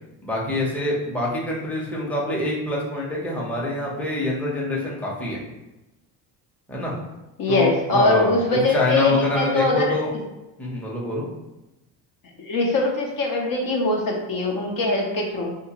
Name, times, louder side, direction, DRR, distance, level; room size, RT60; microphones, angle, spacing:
voice 1, 0.2-5.4 6.7-6.9 7.5-10.1 10.6-11.3, left 2 dB, 5° left, -4 dB, 0.7 m, -25 dB
voice 2, 7.4-10.0 12.4-15.6, left 2 dB, 45° left, 0 dB, 0.7 m, -22 dB
3.5 x 2.5 x 2.9 m, 0.99 s
cardioid pair, 100°, 47 cm